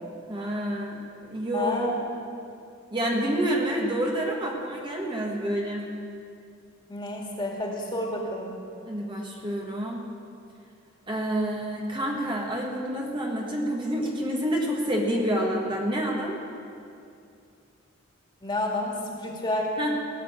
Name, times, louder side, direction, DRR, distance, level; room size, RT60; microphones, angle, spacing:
voice 1, 0.3-1.0 1.3-1.8 2.9-5.9 8.9-10.1 11.1-16.4 19.8-20.0, equal, 25° right, -1 dB, 1.4 m, -28 dB
voice 2, 1.5-1.9 6.9-8.5 18.4-18.9 19.2-19.7, left 1 dB, 25° left, -1 dB, 2.2 m, -29 dB
17.5 x 6.8 x 8.7 m, 2.5 s
head